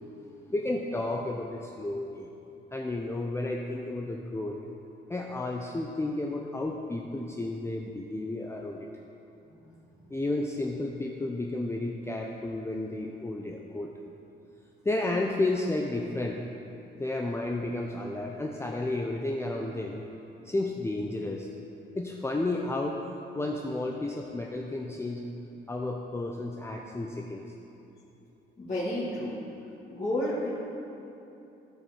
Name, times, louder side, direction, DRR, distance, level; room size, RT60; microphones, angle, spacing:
voice 1, 0.0-2.3 2.7-4.6 5.1-8.9 10.1-13.9 14.8-16.4 17.0-20.1 20.4-21.5 22.0-23.0 23.3-25.3 25.7-27.4, left 2 dB, 15° left, 0 dB, 0.6 m, -32 dB
voice 2, 28.6-29.3 29.9-30.5, left 1 dB, 30° left, -12 dB, 2.3 m, -30 dB
13.5 x 5.1 x 4.5 m, 2.9 s
cardioid pair, 90°, 20 cm